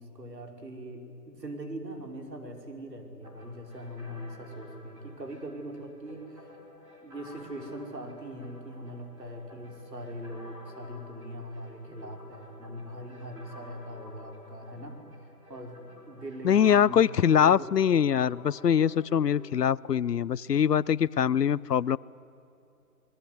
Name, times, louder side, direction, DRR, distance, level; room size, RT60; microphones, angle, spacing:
voice 1, 0.0-6.5 7.0-15.0 15.5-15.8 16.1-17.7, right 1 dB, 90° right, 3 dB, 5.3 m, -41 dB
sound 1, 3.2-19.5, left 3 dB, 5° right, 2.9 m, -51 dB
voice 2, 16.4-22.0, left 8 dB, 75° left, 22 dB, 0.7 m, -23 dB
27.0 x 20.5 x 9.6 m, 2.7 s
figure-of-eight pair, 165°, 48 cm